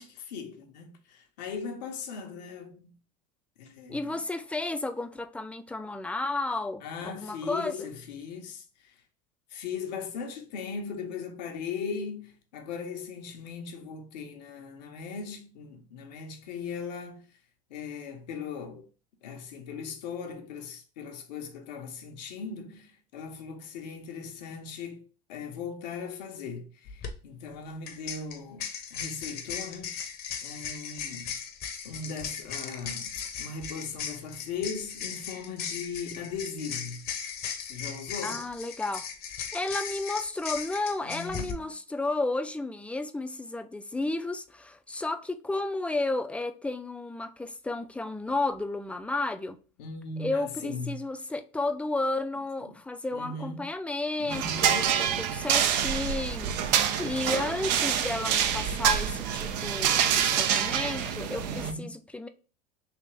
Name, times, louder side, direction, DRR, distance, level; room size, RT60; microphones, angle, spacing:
voice 1, 0.0-2.9 3.6-4.1 6.8-8.9 9.5-17.3 17.7-18.9 19.2-25.0 25.3-28.6 28.9-29.9 30.4-31.3 31.8-33.1 33.4-37.0 37.6-38.5 41.1-41.7 49.8-51.0 52.7-52.8 53.1-53.7 54.2-54.9 61.3-61.9, left 5 dB, 80° left, 0.9 m, -38 dB
voice 2, 3.9-7.8 38.2-39.1 39.5-49.6 50.2-56.5 57.0-62.3, left 2 dB, 5° left, 0.4 m, -32 dB
sound 1, 26.9-27.1 27.9-41.5, left 7 dB, 45° left, 0.8 m, -37 dB
sound 2, 54.3-61.7, right 9 dB, 75° right, 0.5 m, -26 dB
3.4 x 3.0 x 3.2 m
hypercardioid pair, 90°, 21 cm